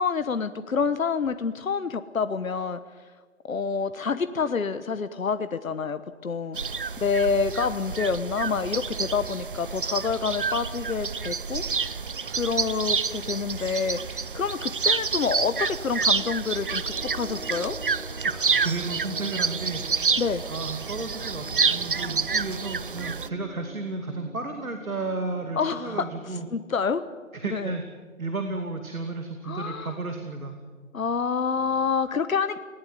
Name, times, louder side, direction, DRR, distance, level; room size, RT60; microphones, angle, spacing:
voice 1, 0.0-2.8 3.5-6.6 7.0-11.8 12.3-17.8 20.2-20.4 25.6-26.1 26.5-27.0 27.5-27.7 29.5-30.0 30.9-32.6, left 5 dB, 75° left, 12 dB, 1.2 m, -27 dB
sound 1, 6.5-23.3, right 5 dB, 40° right, 0.5 m, -28 dB
sound 2, 15.8-26.6, right 1 dB, 5° left, 2.4 m, -46 dB
voice 2, 18.2-20.2 20.5-26.5 27.3-27.8 28.2-30.6, right 3 dB, 90° right, 5 dB, 2.6 m, -33 dB
20.0 x 18.0 x 9.5 m, 1.5 s
figure-of-eight pair, 155°, 41 cm